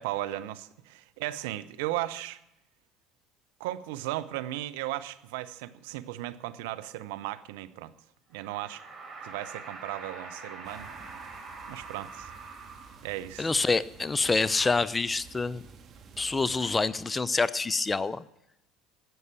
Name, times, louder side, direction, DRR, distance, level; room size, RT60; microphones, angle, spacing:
voice 1, 0.0-2.4 3.6-7.9 8.3-8.8 9.2-10.9 11.7-12.3 13.0-13.5, right 15 dB, 70° right, 0.7 m, -36 dB
sound 1, 8.3-13.4, right 4 dB, 25° right, 4.5 m, -44 dB
sound 2, 10.6-16.8, right 5 dB, 45° right, 1.6 m, -52 dB
voice 2, 13.4-15.6 16.2-18.2, left 3 dB, 20° left, 0.6 m, -27 dB
12.5 x 8.0 x 8.7 m
hypercardioid pair, 65°, 0 cm